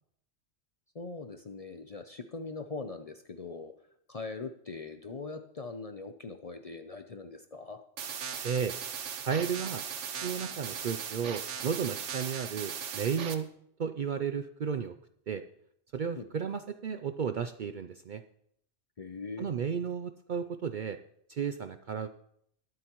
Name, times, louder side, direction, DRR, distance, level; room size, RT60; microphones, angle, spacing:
voice 1, 0.9-3.7 4.1-7.8 16.2-16.3 19.0-19.5, left 4 dB, 40° left, 7 dB, 0.5 m, -41 dB
sound 1, 8.0-13.3, right 7 dB, 75° right, 1.2 m, -38 dB
voice 2, 8.4-8.7 9.2-9.8 10.2-13.5 13.8-14.9 15.3-15.4 15.9-18.2 19.4-21.0 21.3-22.1, right 7 dB, 60° right, 9 dB, 0.5 m, -33 dB
21.5 x 7.9 x 3.0 m, 0.70 s
omnidirectional pair, 1.2 m